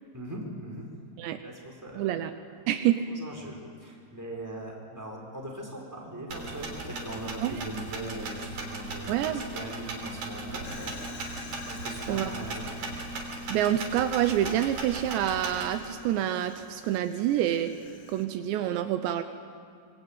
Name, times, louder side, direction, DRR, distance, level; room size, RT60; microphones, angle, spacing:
voice 1, 0.1-0.9 1.4-2.3 3.1-11.2 11.7-12.9, right 1 dB, 5° right, -1 dB, 4.6 m, -40 dB
voice 2, 2.0-2.3 2.7-3.0 7.4-7.6 9.1-9.4 12.1-12.3 13.5-17.7 18.1-19.2, right 11 dB, 80° right, 9 dB, 3.0 m, -27 dB
sound 1, 6.3-15.8, right 2 dB, 55° right, 4.8 m, -37 dB
Fire, 10.6-18.3, left 5 dB, 75° left, 1.2 m, -50 dB
25.0 x 23.5 x 9.0 m, 2.3 s
omnidirectional pair, 5.2 m